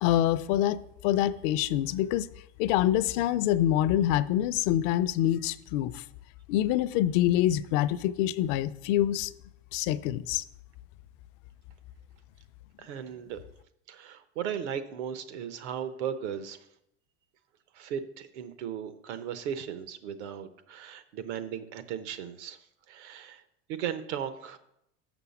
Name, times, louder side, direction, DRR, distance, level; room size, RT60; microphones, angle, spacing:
voice 1, 0.0-2.3 2.6-6.0 6.5-9.3 9.7-10.4, left 12 dB, 50° left, 0.4 m, -26 dB
voice 2, 12.8-13.4 13.9-16.6 17.7-22.6 22.9-23.4 23.7-24.6, right 8 dB, 80° right, 1.0 m, -36 dB
6.5 x 6.0 x 7.0 m
supercardioid pair, 155°, 34 cm